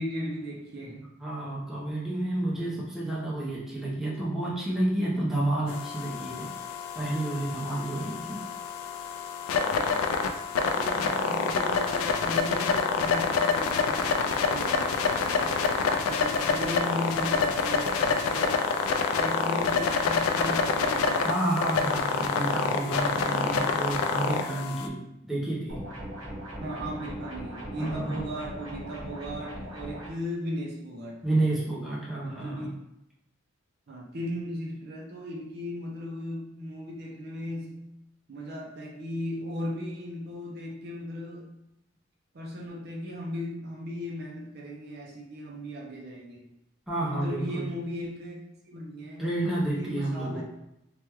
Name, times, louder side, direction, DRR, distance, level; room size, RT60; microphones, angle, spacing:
voice 1, 0.0-1.1 10.6-18.6 19.2-21.3 26.6-31.2 32.2-32.7 33.9-37.9 38.3-41.5 42.3-46.4 47.0-48.4 48.6-49.3 49.7-50.4, equal, 50° right, -1 dB, 0.5 m, -37 dB
voice 2, 1.2-6.5 6.9-8.4 21.2-25.0 25.2-25.8 27.8-28.3 31.2-32.7 46.9-47.7 49.2-50.4, right 1 dB, ahead, -7 dB, 0.6 m, -30 dB
sound 1, 5.7-24.9, left 5 dB, 90° left, 0.3 m, -27 dB
sound 2, 25.7-30.1, equal, 70° right, 1.2 m, -39 dB
3.3 x 2.2 x 2.9 m, 0.86 s
head